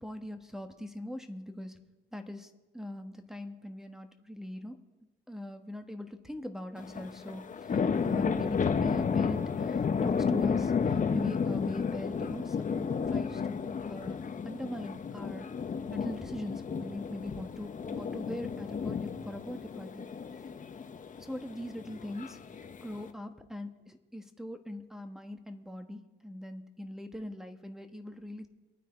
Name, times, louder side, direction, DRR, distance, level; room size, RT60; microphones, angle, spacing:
voice 1, 0.0-1.8 2.1-4.8 5.3-15.5 15.9-20.0 21.2-28.5, left 1 dB, ahead, 7 dB, 1.4 m, -41 dB
sound 1, 6.8-23.1, left 6 dB, 40° left, 1.1 m, -32 dB
24.5 x 9.3 x 4.5 m, 1.1 s
cardioid pair, 90°, 20 cm